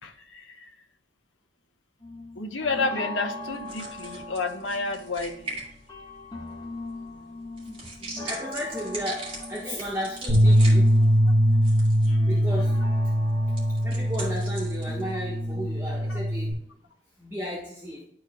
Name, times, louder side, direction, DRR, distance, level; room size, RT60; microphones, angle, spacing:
voice 1, 0.0-0.7 2.4-5.6 12.0-12.6 16.1-16.2, left 3 dB, 80° left, 4 dB, 1.0 m, -31 dB
sound 1, 2.0-16.1, left 2 dB, 20° left, 1.4 m, -40 dB
sound 2, 3.4-16.3, right 2 dB, 30° right, 2.7 m, -43 dB
voice 2, 7.6-10.9 12.3-12.7 13.5-13.6 13.8-16.6 17.2-18.0, equal, 15° right, -5 dB, 1.4 m, -34 dB
Bass guitar, 10.3-16.5, equal, 50° right, 2.5 m, -22 dB
12.0 x 4.5 x 2.3 m, 0.70 s
head